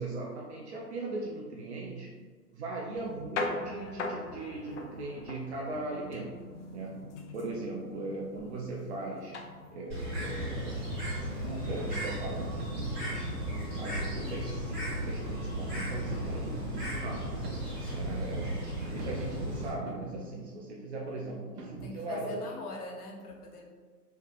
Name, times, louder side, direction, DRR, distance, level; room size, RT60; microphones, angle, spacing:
voice 1, 0.0-2.1 2.5-6.3 6.7-7.0 7.3-9.3 9.7-13.3 13.8-17.3 17.9-18.6 18.9-22.4, right 2 dB, 45° right, -2 dB, 0.5 m, -39 dB
sound 1, 3.0-19.1, left 2 dB, 50° left, 0.5 m, -43 dB
Bird, 9.9-19.7, equal, 20° right, 1.5 m, -35 dB
sound 2, 12.4-12.8 13.7-14.3 15.1-15.6 16.1-16.6 17.3-17.9 18.8-19.3 19.9-20.5 21.6-22.2, right 3 dB, 85° right, 0.7 m, -45 dB
voice 2, 18.4-19.0 21.8-23.6, left 1 dB, 70° left, -1 dB, 1.0 m, -42 dB
3.2 x 2.9 x 2.4 m, 1.5 s
hypercardioid pair, 140°, 47 cm